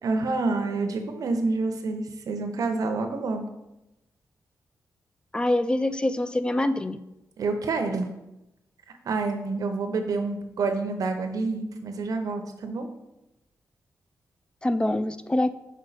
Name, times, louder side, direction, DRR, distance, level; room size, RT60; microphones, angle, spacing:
voice 1, 0.0-3.5 7.4-8.1 9.0-12.9, right 3 dB, 75° right, 6 dB, 0.7 m, -28 dB
voice 2, 5.3-7.0 14.6-15.5, left 1 dB, 15° left, 11 dB, 0.3 m, -25 dB
5.5 x 4.9 x 4.0 m, 0.93 s
wide cardioid pair, 105°, 6 cm